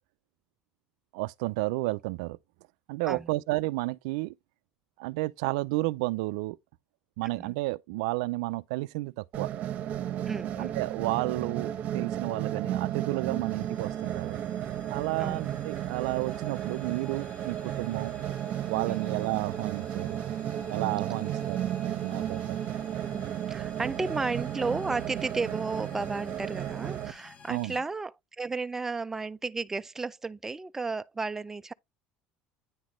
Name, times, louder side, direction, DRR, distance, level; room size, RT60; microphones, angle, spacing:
voice 1, 1.1-2.4 2.9-4.3 5.0-6.6 7.2-9.5 10.6-14.4 14.9-18.1 18.7-20.2 20.7-22.6 27.5-27.8, right 21 dB, 90° right, 0.4 m, -32 dB
sound 1, 9.3-27.1, right 11 dB, 50° right, 0.8 m, -34 dB
voice 2, 10.3-10.8 15.2-15.5 18.9-19.0 23.0-31.7, right 3 dB, 10° right, 0.4 m, -33 dB
sound 2, 12.8-27.8, left 5 dB, 45° left, 1.2 m, -52 dB
9.4 x 4.1 x 3.1 m
supercardioid pair, 120°, 3 cm